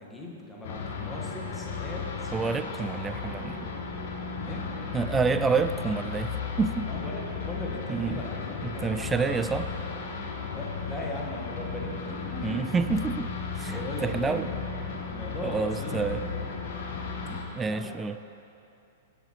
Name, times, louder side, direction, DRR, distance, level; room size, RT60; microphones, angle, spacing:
voice 1, 0.0-2.3 2.7-2.8 3.1-3.2 4.5-4.7 6.8-9.5 9.8-9.9 10.5-12.7 13.7-14.6 15.1-16.0 16.3-16.5 17.7-18.0, left 1 dB, 10° left, -2 dB, 1.7 m, -39 dB
sound 1, 0.6-17.4, left 5 dB, 55° left, 1.4 m, -35 dB
voice 2, 2.3-3.7 4.9-6.9 7.9-8.2 8.6-9.7 12.4-14.5 15.4-16.3 17.3-18.2, right 5 dB, 15° right, 11 dB, 0.4 m, -29 dB
16.5 x 8.3 x 3.2 m, 2.6 s
figure-of-eight pair, 100°, 0 cm